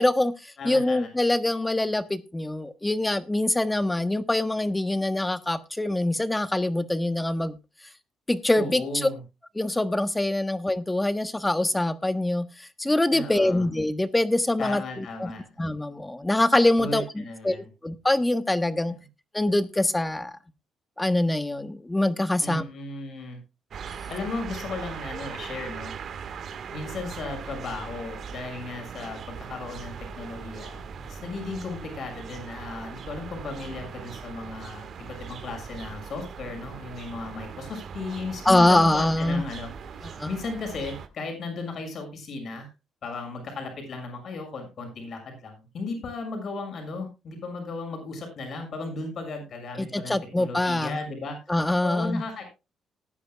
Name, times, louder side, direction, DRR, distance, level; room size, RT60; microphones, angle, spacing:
voice 1, 0.0-7.6 8.3-9.1 9.5-15.3 15.6-19.0 19.3-20.4 21.0-22.6 38.4-39.4 40.0-40.3 49.8-51.0 51.5-52.2, left 1 dB, 15° left, 11 dB, 1.3 m, -24 dB
voice 2, 0.6-1.1 8.6-9.2 13.1-13.7 14.6-15.4 16.8-17.7 22.4-23.4 24.1-25.9 26.7-42.7 43.0-51.4 51.8-52.4, left 3 dB, 60° left, 4 dB, 6.5 m, -35 dB
sound 1, 23.7-41.1, right 6 dB, 60° right, 1.8 m, -40 dB
19.5 x 10.0 x 2.4 m, 0.27 s
cardioid pair, 90°, 0 cm